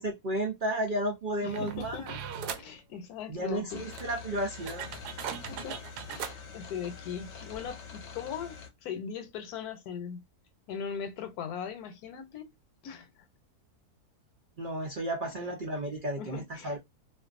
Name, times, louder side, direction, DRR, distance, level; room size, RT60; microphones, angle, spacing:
voice 1, 0.0-2.1 3.3-4.9 14.6-16.8, right 1 dB, 70° right, 0.4 m, -33 dB
voice 2, 1.4-2.2 2.5-3.8 5.3-5.8 6.1-10.2 10.7-12.5 12.8-13.1 16.2-16.8, left 7 dB, 75° left, 1.1 m, -39 dB
sound 1, 1.5-2.7 3.5-3.6 3.9-6.4 7.2-7.3 7.5-7.7, right 7 dB, 90° right, 1.1 m, -39 dB
sound 2, 3.7-8.7, left 6 dB, 60° left, 0.8 m, -45 dB
2.5 x 2.3 x 2.4 m
omnidirectional pair, 1.7 m